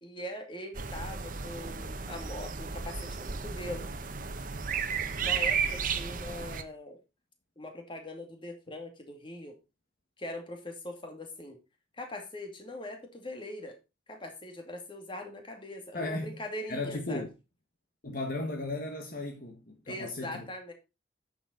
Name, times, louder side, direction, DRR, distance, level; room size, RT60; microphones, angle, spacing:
voice 1, 0.0-3.9 5.2-7.0 7.6-9.6 10.2-11.6 12.0-13.8 14.1-17.2 19.9-20.7, left 1 dB, 30° left, 2.4 m, -41 dB
sound 1, 0.7-6.6, right 6 dB, 50° right, 1.0 m, -33 dB
voice 2, 15.9-16.3 16.7-17.3 18.0-20.5, left 2 dB, 50° left, 1.5 m, -35 dB
9.8 x 7.4 x 3.9 m
head